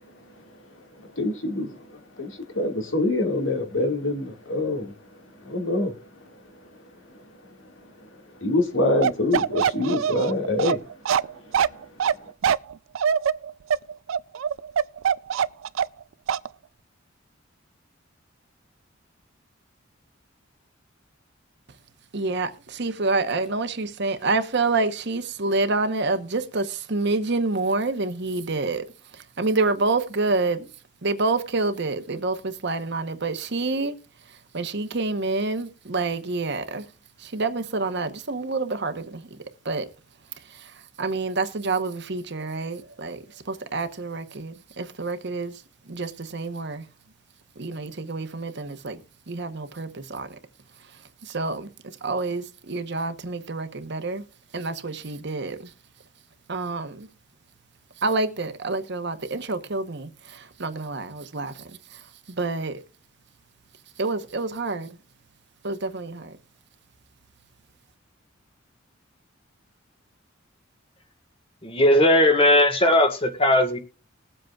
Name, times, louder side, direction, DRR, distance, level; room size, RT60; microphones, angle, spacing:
voice 1, 1.0-5.0 5.4-5.9 8.0-8.1 8.4-10.8 11.4-11.5, left 2 dB, 75° left, 2.0 m, -25 dB
Bark, 9.0-16.0 16.3-16.5, right 8 dB, 80° right, 0.4 m, -23 dB
voice 2, 22.1-28.8 29.1-30.7 31.0-34.0 34.3-36.8 37.2-39.3 39.6-39.9 40.4-46.8 47.6-49.0 49.3-50.3 50.8-51.7 52.0-54.2 54.5-55.7 56.5-57.1 58.0-61.6 61.9-62.8 64.0-65.0 65.6-66.4, right 3 dB, 60° right, 1.0 m, -28 dB
voice 3, 71.6-73.8, left 1 dB, 30° left, 1.6 m, -18 dB
21.0 x 7.8 x 2.4 m
head